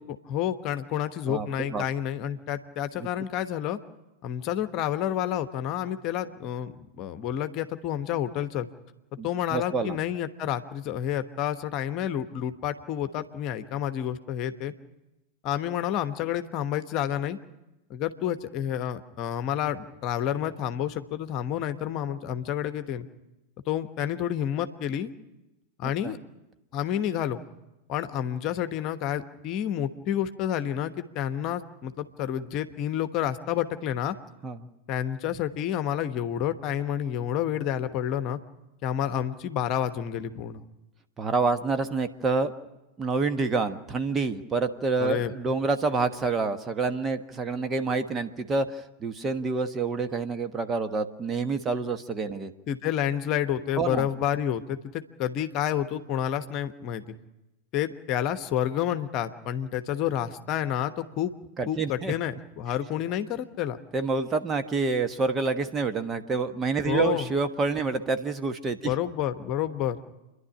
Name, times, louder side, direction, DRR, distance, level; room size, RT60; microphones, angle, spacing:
voice 1, 0.3-3.8 4.2-8.7 9.2-14.7 15.4-17.4 17.9-23.1 23.7-25.1 25.8-26.2 26.7-27.4 27.9-34.1 34.9-38.4 38.8-40.6 45.0-45.3 52.7-57.0 57.7-61.3 61.7-63.8 66.8-67.3 68.8-70.0, left 10 dB, 40° left, 10 dB, 1.1 m, -29 dB
voice 2, 1.3-1.8 3.0-3.1 9.2-10.0 26.0-26.1 34.4-34.6 41.2-42.5 43.0-52.5 53.8-54.1 61.6-62.1 63.9-68.9, right 4 dB, 20° right, 8 dB, 1.2 m, -28 dB
29.0 x 11.5 x 9.9 m, 0.98 s
figure-of-eight pair, 90°, 0 cm